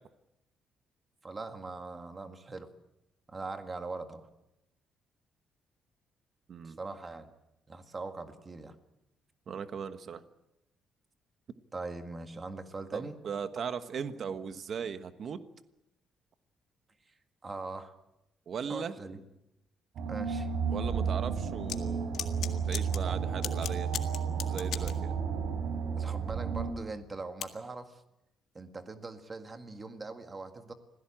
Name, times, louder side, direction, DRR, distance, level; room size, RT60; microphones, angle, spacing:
voice 1, 1.2-2.7 3.3-4.3 6.6-7.3 7.7-8.7 11.7-13.2 17.4-17.9 18.7-19.2 20.1-20.5 26.0-28.0 28.5-30.7, right 3 dB, 20° right, 7 dB, 1.8 m, -41 dB
voice 2, 6.5-6.8 9.5-10.2 12.9-15.4 18.5-18.9 20.7-23.9 24.5-25.1, right 6 dB, 45° right, 10 dB, 1.2 m, -38 dB
sound 1, 20.0-26.7, right 6 dB, 60° right, 4.0 m, -32 dB
sound 2, 21.7-21.8 22.1-23.0 23.4-24.9 27.4-27.5, left 10 dB, 65° left, 1.8 m, -36 dB
26.0 x 17.0 x 8.8 m, 0.90 s
cardioid pair, 160°, 0 cm